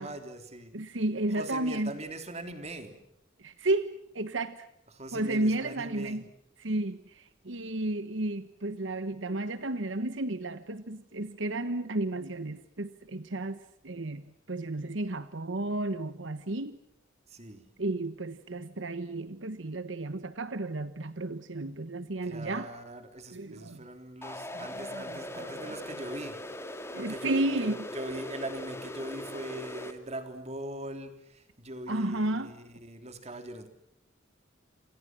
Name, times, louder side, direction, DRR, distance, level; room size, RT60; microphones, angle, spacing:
voice 1, 0.0-0.7 1.3-3.0 4.9-6.2 17.3-17.6 22.2-26.4 26.9-33.7, right 1 dB, 35° right, 7 dB, 3.4 m, -41 dB
voice 2, 0.7-1.9 3.4-4.6 5.1-6.2 6.6-14.2 14.5-16.8 17.8-22.7 23.3-23.8 24.5-26.0 26.9-27.8 31.9-32.5, right 2 dB, 75° right, 12 dB, 1.2 m, -33 dB
sound 1, 24.2-29.9, left 1 dB, 15° left, 2.3 m, -40 dB
29.0 x 27.5 x 6.1 m, 0.79 s
head